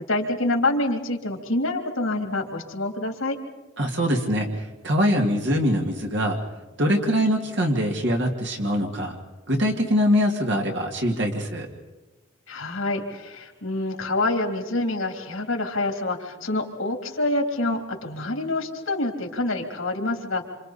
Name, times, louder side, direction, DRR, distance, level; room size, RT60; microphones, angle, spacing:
voice 1, 0.1-3.4 12.5-20.4, left 2 dB, 85° left, 2 dB, 3.2 m, -26 dB
voice 2, 3.8-6.4 6.8-9.2 9.5-11.7, equal, 60° right, 1 dB, 2.2 m, -23 dB
28.0 x 27.0 x 4.2 m, 1.2 s
head